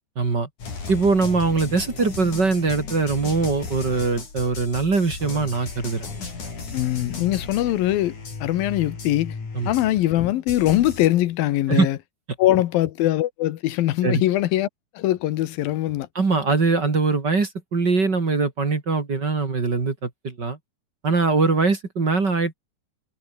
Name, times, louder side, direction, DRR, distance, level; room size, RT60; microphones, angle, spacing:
voice 1, 0.2-0.5 0.9-6.1 9.5-9.7 11.7-11.9 14.0-14.2 16.1-20.6 21.0-22.5, right 4 dB, 30° right, 3.1 m, -22 dB
sound 1, 0.6-10.1 10.5-11.1, left 4 dB, 60° left, 7.3 m, -35 dB
voice 2, 6.7-8.2 8.4-9.4 9.7-12.0 12.4-14.7 14.9-16.1, left 14 dB, 80° left, 2.9 m, -22 dB
omnidirectional pair, 4.1 m